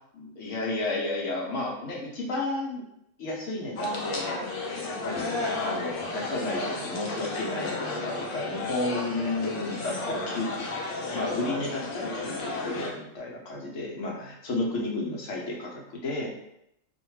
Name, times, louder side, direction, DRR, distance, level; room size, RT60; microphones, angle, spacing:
voice 1, 0.1-2.8 3.2-4.5 4.8-16.3, left 2 dB, 75° left, -2 dB, 1.0 m, -32 dB
sound 1, 3.7-12.9, left 2 dB, 60° left, 0.6 m, -33 dB
2.5 x 2.2 x 3.0 m, 0.79 s
omnidirectional pair, 1.3 m